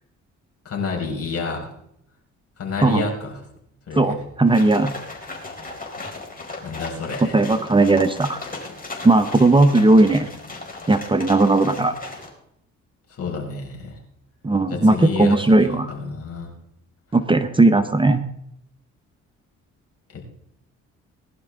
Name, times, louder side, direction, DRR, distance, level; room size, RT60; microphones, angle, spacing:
voice 1, 0.7-1.7 2.6-3.4 3.9-4.2 6.0-6.1 6.6-7.3 13.1-14.0 14.7-16.5 20.1-20.4, left 4 dB, 50° left, -1 dB, 5.2 m, -29 dB
voice 2, 3.9-4.9 7.3-8.4 9.0-10.3 10.9-11.9 14.4-15.9 17.1-18.2, right 2 dB, 15° right, 8 dB, 0.8 m, -17 dB
sound 1, 4.5-12.3, left 2 dB, 30° left, 4.2 m, -36 dB
20.0 x 11.5 x 3.7 m, 0.75 s
cardioid pair, 90°, 30 cm